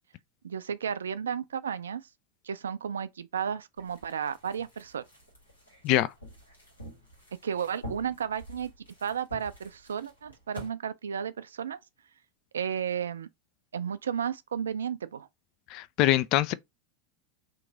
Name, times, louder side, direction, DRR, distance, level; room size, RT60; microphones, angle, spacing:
voice 1, 0.4-2.0 2.4-5.0 7.4-8.7 9.0-11.8 12.5-13.3 13.7-15.3, right 8 dB, 80° right, 0.3 m, -33 dB
sound 1, 3.8-10.7, equal, 90° left, 1.5 m, -48 dB
voice 2, 15.7-16.5, left 14 dB, 50° left, 0.3 m, -24 dB
3.0 x 2.5 x 3.8 m
hypercardioid pair, 85°, 0 cm